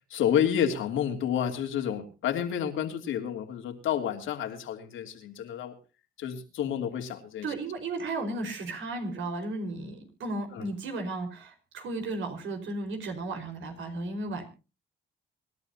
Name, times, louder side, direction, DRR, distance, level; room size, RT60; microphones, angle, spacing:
voice 1, 0.0-5.7 6.2-7.5 10.5-10.7, left 9 dB, 85° left, 4 dB, 3.0 m, -30 dB
voice 2, 7.4-14.5, right 2 dB, 75° right, 6 dB, 4.9 m, -34 dB
25.5 x 12.0 x 2.8 m, 0.32 s
cardioid pair, 90°, 20 cm